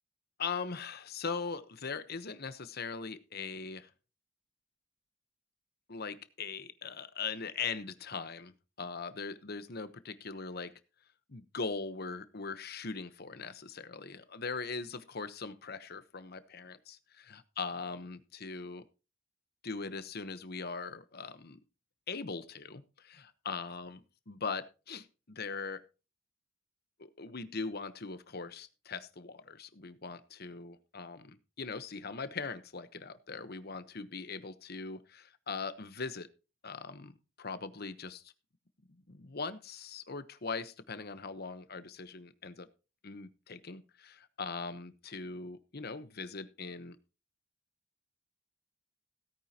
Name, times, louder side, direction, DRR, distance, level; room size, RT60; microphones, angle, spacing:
voice 1, 0.4-3.9 5.9-10.7 11.3-18.8 19.6-21.6 22.1-25.8 27.0-36.3 36.6-38.3 39.1-42.7 43.0-47.0, left 4 dB, 50° left, 12 dB, 1.1 m, -40 dB
17.0 x 9.3 x 2.9 m, 0.32 s
head